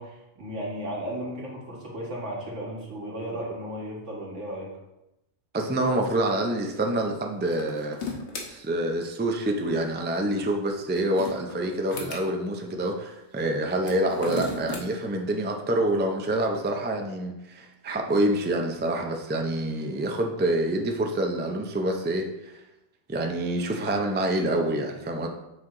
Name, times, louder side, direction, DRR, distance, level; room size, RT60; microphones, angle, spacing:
voice 1, 0.0-4.7, equal, 80° right, -3 dB, 1.8 m, -35 dB
voice 2, 5.5-8.0 8.5-22.6 23.1-25.3, right 1 dB, 15° right, 2 dB, 0.4 m, -27 dB
sound 1, 7.5-8.5 10.7-12.2 13.8-14.8, left 3 dB, 70° left, 1.3 m, -35 dB
6.2 x 4.6 x 3.7 m, 0.92 s
omnidirectional pair, 1.2 m